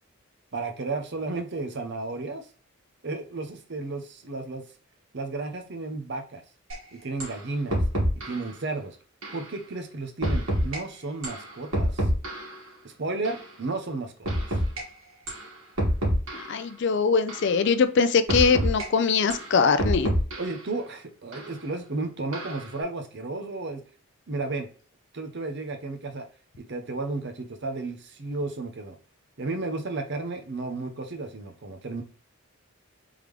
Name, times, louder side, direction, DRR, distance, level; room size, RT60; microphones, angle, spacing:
voice 1, 0.5-2.5 3.0-4.6 5.1-6.4 6.9-7.8 8.2-9.0 9.3-12.1 12.8-14.6 20.4-23.8 24.3-24.7 25.1-26.3 26.6-29.0 29.4-32.0, right 3 dB, 50° right, 5 dB, 0.7 m, -33 dB
sound 1, 6.7-6.8 7.2-7.4 7.7-8.5 9.2-9.4 10.2-10.8 11.2-12.6 13.2-13.4 14.2-14.8 15.3-15.5 15.8-16.6 17.3-17.5 18.3-18.8 19.3-20.6 21.3-21.5 22.3-22.7, equal, 65° right, 1.9 m, -27 dB
voice 2, 16.5-20.1, left 5 dB, 50° left, 11 dB, 0.4 m, -22 dB
3.6 x 3.3 x 3.2 m, 0.40 s
head